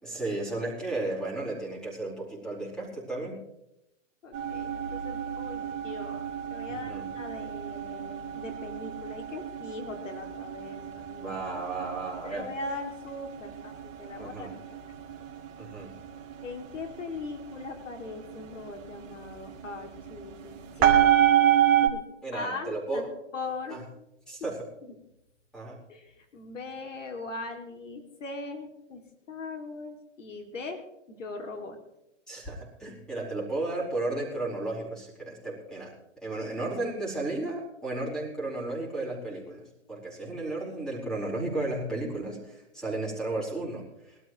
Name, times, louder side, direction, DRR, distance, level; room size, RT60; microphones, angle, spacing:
voice 1, 0.0-3.4 6.7-7.1 11.2-12.5 14.2-14.5 15.6-15.9 20.8-21.6 22.2-23.0 23.7-23.8 24.3-24.6 25.5-25.8 32.3-35.9 36.2-39.6 39.9-44.2, right 2 dB, ahead, -4 dB, 4.5 m, -34 dB
voice 2, 4.2-11.3 12.2-14.9 16.4-21.0 21.8-22.1 22.3-24.0 24.8-24.9 25.9-29.0 29.3-30.8 31.1-31.8, left 3 dB, 80° left, 5 dB, 2.8 m, -40 dB
sound 1, 4.3-21.9, right 10 dB, 25° right, 2.5 m, -29 dB
22.0 x 13.0 x 3.1 m, 0.85 s
hypercardioid pair, 145°, 37 cm